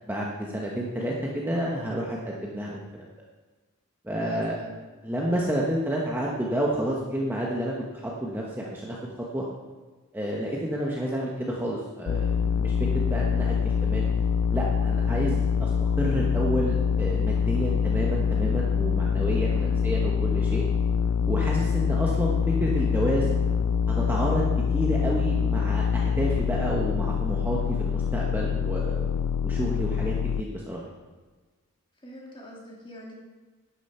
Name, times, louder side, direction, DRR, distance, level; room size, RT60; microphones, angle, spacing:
voice 1, 0.1-3.1 4.0-4.6 5.0-9.0 9.3-9.4 10.1-14.1 14.5-20.6 21.3-23.4 23.9-24.4 24.7-29.1 29.4-30.8, right 1 dB, 10° right, -3 dB, 1.1 m, -30 dB
voice 2, 4.2-4.8 19.5-19.8 32.0-33.1, equal, 25° left, -3 dB, 2.6 m, -43 dB
sound 1, 12.1-30.4, left 6 dB, 90° left, 0.3 m, -25 dB
11.0 x 10.0 x 4.4 m, 1.3 s
head